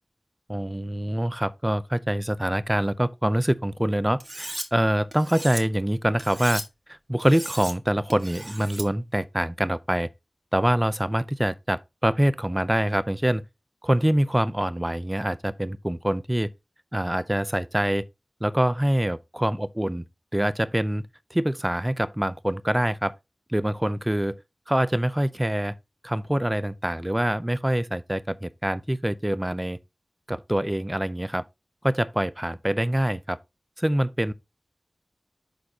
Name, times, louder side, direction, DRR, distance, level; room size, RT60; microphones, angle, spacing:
voice 1, 0.5-6.6 6.9-10.1 10.5-13.4 13.8-16.5 16.9-18.1 18.4-20.0 20.3-21.0 21.3-23.1 23.5-24.4 24.7-25.7 26.0-29.8 30.3-31.4 31.8-33.4 33.8-34.3, right 1 dB, 15° right, 0.6 m, -25 dB
Cutlery silverware, 4.2-4.7 5.1-5.6 6.2-6.7 7.2-7.7 8.1-8.9, right 1 dB, 30° right, 1.6 m, -36 dB
11.5 x 4.1 x 2.8 m
wide cardioid pair, 40°, 0 cm